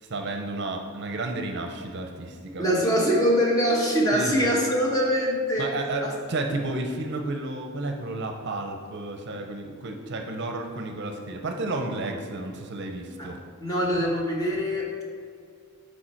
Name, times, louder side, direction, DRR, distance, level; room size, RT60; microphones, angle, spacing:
voice 1, 0.0-2.6 4.1-4.3 5.6-13.4, right 2 dB, 50° right, 4 dB, 0.6 m, -32 dB
voice 2, 2.6-5.7 6.0-6.1 13.2-13.3 13.6-15.0, equal, 15° left, -3 dB, 1.1 m, -23 dB
7.2 x 4.6 x 4.4 m, 2.1 s
head